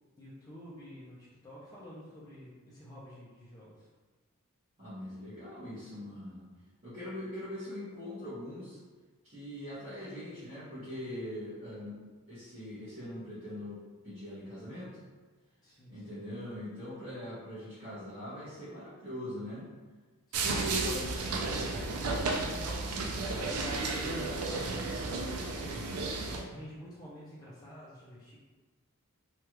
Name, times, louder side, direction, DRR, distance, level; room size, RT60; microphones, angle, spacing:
voice 1, 0.2-3.9 15.6-16.0 20.3-24.1 24.4-25.3 26.4-28.4, equal, 15° left, -8 dB, 0.5 m, -50 dB
voice 2, 4.8-6.5 6.8-8.8 9.2-12.0 12.3-15.0 15.9-19.7, left 1 dB, 30° right, -16 dB, 1.2 m, -42 dB
sound 1, 20.3-26.4, right 3 dB, 90° right, 0.4 m, -33 dB
3.2 x 2.3 x 3.0 m, 1.3 s
head